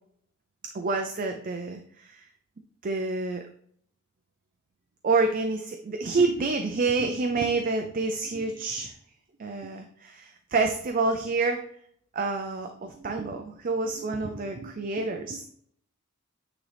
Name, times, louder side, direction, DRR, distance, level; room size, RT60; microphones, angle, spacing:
voice 1, 0.7-2.2 2.8-3.4 5.0-8.9 9.4-11.6 12.1-15.4, right 3 dB, 40° right, 5 dB, 0.5 m, -28 dB
8.8 x 3.9 x 3.4 m, 0.65 s
head